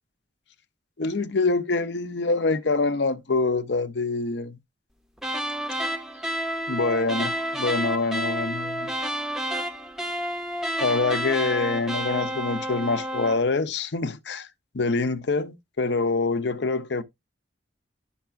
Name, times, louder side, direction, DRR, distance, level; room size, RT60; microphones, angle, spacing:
voice 1, 1.0-4.6 6.7-8.9 10.8-14.5 14.7-17.0, left 3 dB, 65° left, 0.7 m, -25 dB
sound 1, 5.2-13.5, right 1 dB, 5° right, 0.6 m, -30 dB
11.5 x 5.6 x 2.4 m
head